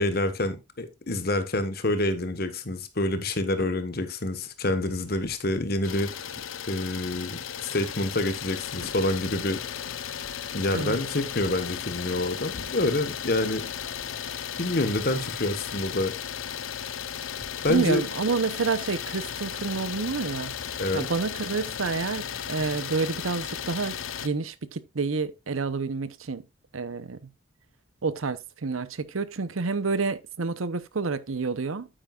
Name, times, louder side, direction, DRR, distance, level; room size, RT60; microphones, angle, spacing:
voice 1, 0.0-6.1 6.7-9.6 10.5-13.7 14.6-16.1 17.6-18.0 20.8-21.1, left 2 dB, 50° left, 1.3 m, -27 dB
sound 1, 3.4-3.8 4.5-5.4 5.9-6.5 7.1-17.9, right 1 dB, 70° right, 5.3 m, -52 dB
Idling, 5.8-24.3, left 8 dB, 85° left, 0.7 m, -35 dB
voice 2, 17.7-20.5 20.9-26.4 26.7-27.3 28.0-31.9, right 4 dB, 90° right, 0.7 m, -29 dB
9.1 x 8.8 x 2.4 m
head